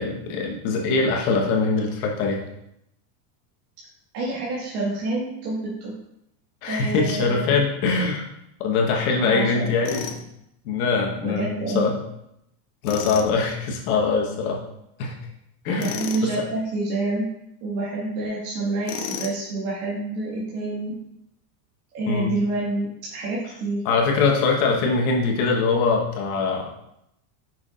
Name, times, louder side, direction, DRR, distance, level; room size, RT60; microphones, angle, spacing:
voice 1, 0.0-2.4 6.6-8.2 8.6-10.2 10.6-11.5 11.7-12.0 12.8-14.6 15.0-15.1 15.6-15.9 16.2-16.3 22.1-22.3 23.8-26.7, left 4 dB, 60° left, 0 dB, 1.3 m, -22 dB
voice 2, 4.1-5.9 6.7-7.5 9.2-9.7 11.2-11.9 15.7-17.3 17.6-20.9 21.9-23.8, right 2 dB, 65° right, -6 dB, 1.8 m, -28 dB
Tools, 9.9-10.2 12.8-13.3 15.8-16.3 18.9-19.5, left 7 dB, 85° left, 1.0 m, -32 dB
6.1 x 6.1 x 2.5 m, 0.80 s
supercardioid pair, 175°, 49 cm